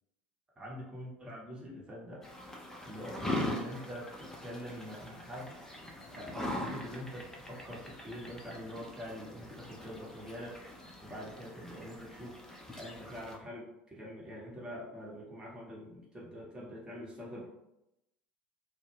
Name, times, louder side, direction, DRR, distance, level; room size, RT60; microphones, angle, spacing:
voice 1, 0.6-2.2 2.8-10.7 11.0-13.7 13.9-17.5, equal, 15° right, -5 dB, 0.9 m, -45 dB
sound 1, 2.2-13.4, left 1 dB, 10° left, 0.5 m, -42 dB
2.1 x 2.1 x 3.2 m, 0.87 s
figure-of-eight pair, 70°, 6 cm